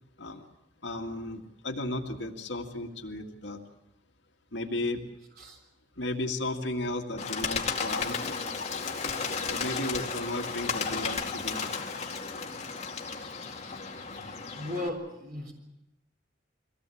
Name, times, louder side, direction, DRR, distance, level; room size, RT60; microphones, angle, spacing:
voice 1, 0.8-3.6 4.5-5.0 6.0-8.4 9.5-11.6, left 2 dB, 70° left, 3 dB, 2.1 m, -34 dB
Bird, 7.2-14.9, left 5 dB, 35° left, 2.4 m, -34 dB
voice 2, 14.5-15.5, left 1 dB, 50° right, 2 dB, 4.0 m, -36 dB
24.0 x 18.0 x 8.5 m, 0.90 s
head